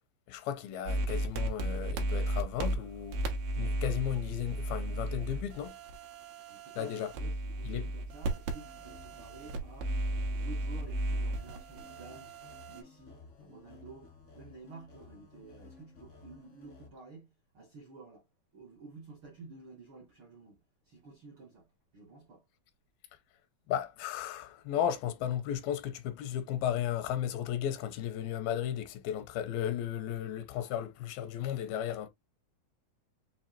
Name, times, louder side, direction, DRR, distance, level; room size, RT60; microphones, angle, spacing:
voice 1, 0.3-3.2 3.6-5.8 6.8-7.1 7.7-7.9 23.7-32.1, left 10 dB, 85° left, 2.5 m, -34 dB
sound 1, 0.9-12.8, right 1 dB, 85° right, 3.1 m, -35 dB
voice 2, 6.5-9.9 10.3-12.3 12.7-18.3 18.5-22.4, right 3 dB, 70° right, 1.2 m, -52 dB
sound 2, 8.6-16.9, left 4 dB, 55° left, 0.7 m, -55 dB
7.1 x 2.6 x 2.8 m
omnidirectional pair, 4.3 m